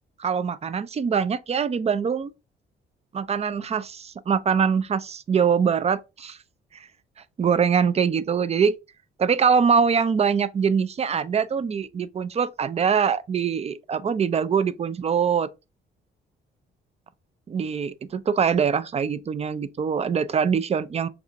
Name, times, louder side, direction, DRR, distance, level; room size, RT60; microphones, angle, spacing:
voice 1, 0.2-2.3 3.1-6.4 6.7-6.9 7.4-8.8 9.2-15.5 17.5-21.1, right 6 dB, 30° right, 0.5 m, -23 dB
5.9 x 2.5 x 2.7 m
cardioid pair, 90°, 20 cm